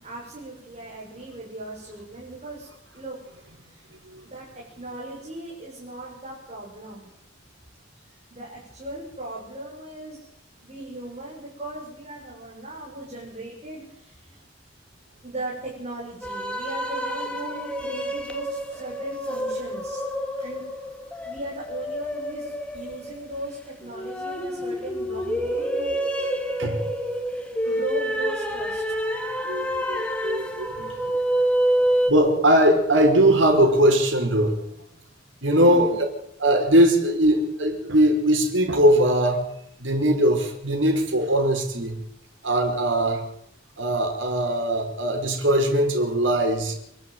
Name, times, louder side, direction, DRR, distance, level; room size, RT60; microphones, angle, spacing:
voice 1, 0.0-3.9 4.2-7.1 8.3-10.3 10.6-14.4 15.2-20.0 20.4-20.6 21.2-26.3 27.6-28.8 29.3-29.8 35.6-36.0, right 2 dB, 35° right, -5 dB, 6.9 m, -38 dB
sound 1, 16.2-32.1, equal, 5° left, 2.5 m, -28 dB
voice 2, 29.4-31.1 31.7-34.6 35.4-36.0 36.4-39.5 39.8-42.0 42.4-43.3 43.8-46.7, right 1 dB, 85° right, 4 dB, 5.0 m, -20 dB
28.0 x 12.0 x 9.3 m, 0.79 s
head